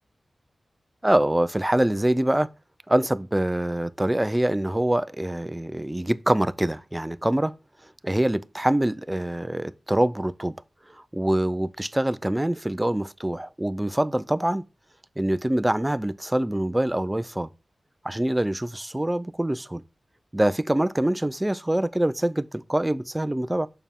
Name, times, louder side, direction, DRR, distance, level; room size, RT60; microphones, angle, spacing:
voice 1, 1.0-2.5 2.9-7.5 8.0-10.5 10.9-14.6 15.2-17.5 18.0-19.8 20.3-23.7, right 1 dB, 15° right, 0.5 m, -24 dB
7.1 x 5.5 x 3.6 m
wide cardioid pair, 85°, 0 cm